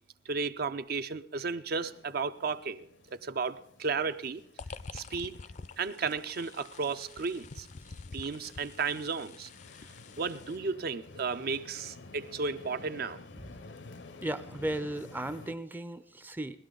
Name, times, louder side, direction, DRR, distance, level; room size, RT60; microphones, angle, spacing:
voice 1, 0.3-4.4 4.9-5.4 5.8-7.7 8.1-9.5 10.2-13.2, right 4 dB, 55° right, 0.6 m, -34 dB
sound 1, 1.7-15.6, left 3 dB, 75° left, 0.7 m, -52 dB
sound 2, 4.6-10.6, left 4 dB, 40° left, 0.4 m, -47 dB
voice 2, 14.2-16.7, right 1 dB, 10° right, 0.5 m, -36 dB
18.5 x 12.0 x 3.8 m
head